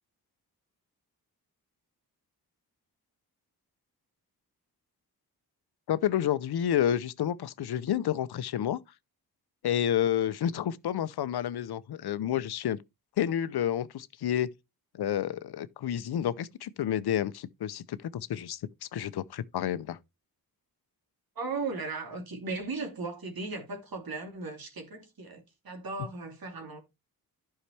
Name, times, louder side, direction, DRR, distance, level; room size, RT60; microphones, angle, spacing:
voice 1, 5.9-8.8 9.6-12.8 13.2-14.5 14.9-18.6 18.9-20.0, left 10 dB, 85° left, 0.7 m, -30 dB
voice 2, 21.3-26.8, right 3 dB, 65° right, 3.0 m, -37 dB
11.5 x 5.7 x 3.3 m
cardioid pair, 75°, 38 cm